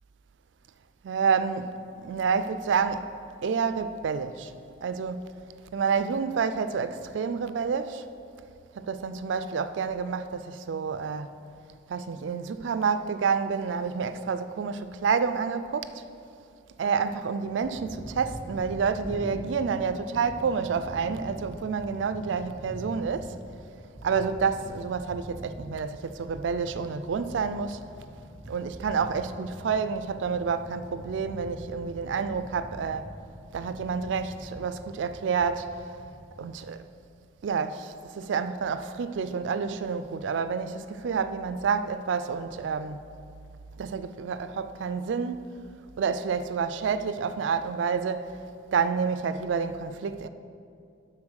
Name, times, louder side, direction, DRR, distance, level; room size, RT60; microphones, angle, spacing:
voice 1, 1.0-3.1 3.4-4.5 4.8-5.3 5.7-8.0 8.8-11.3 11.9-15.9 16.8-23.4 24.0-27.8 28.5-33.1 33.5-35.7 36.4-36.9 37.4-43.0 43.8-45.6 46.0-48.3 48.7-50.3, right 5 dB, 85° right, 0.4 m, -29 dB
sound 1, 17.6-36.3, equal, 15° right, 0.9 m, -44 dB
9.7 x 4.0 x 6.3 m
head